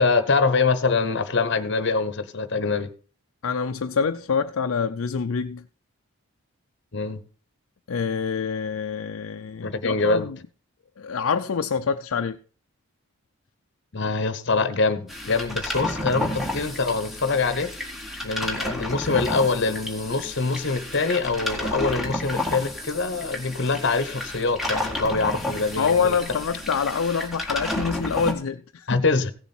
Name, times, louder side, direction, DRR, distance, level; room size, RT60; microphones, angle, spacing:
voice 1, 0.0-2.9 6.9-7.2 9.6-10.3 13.9-17.7 18.2-26.2 28.9-29.3, left 4 dB, 55° left, 1.0 m, -24 dB
voice 2, 3.4-5.6 7.9-10.4 11.0-12.4 25.8-29.0, left 6 dB, 70° left, 0.4 m, -26 dB
sound 1, 15.1-28.3, left 1 dB, ahead, 1.6 m, -31 dB
16.0 x 7.0 x 4.3 m
head